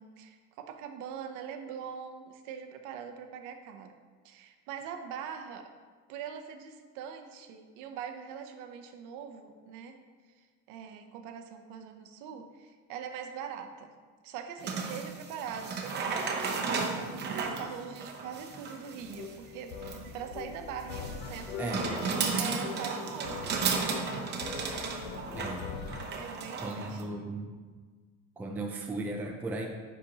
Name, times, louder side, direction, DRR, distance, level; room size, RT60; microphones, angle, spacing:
voice 1, 0.0-3.9 4.2-5.7 6.1-10.0 10.4-13.9 14.2-25.0 26.2-27.0, right 7 dB, 65° right, 6 dB, 0.7 m, -43 dB
sound 1, 14.6-27.0, right 4 dB, 30° right, 0.7 m, -34 dB
sound 2, 19.0-26.1, left 6 dB, 85° left, 0.7 m, -42 dB
voice 2, 21.5-21.8 24.9-25.1 25.3-25.7 26.6-27.5 28.4-29.7, right 2 dB, 5° right, 1 dB, 0.3 m, -36 dB
10.0 x 4.2 x 2.8 m, 1.5 s
cardioid pair, 160°, 32 cm